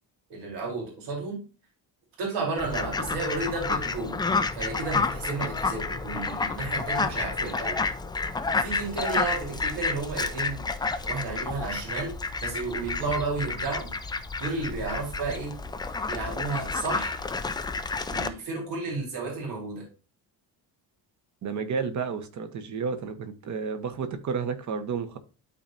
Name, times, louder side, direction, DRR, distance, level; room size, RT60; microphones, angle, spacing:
voice 1, 0.3-1.4 2.2-4.2 4.6-7.8 8.6-10.7 11.0-12.1 12.4-13.9 14.4-15.5 16.1-17.2 18.1-19.8, right 3 dB, 90° right, 4.0 m, -32 dB
Fowl, 2.6-18.3, left 4 dB, 10° left, 0.4 m, -30 dB
voice 2, 21.4-25.2, right 5 dB, 45° right, 1.1 m, -31 dB
12.5 x 4.3 x 2.6 m
cardioid pair, 175°, 41 cm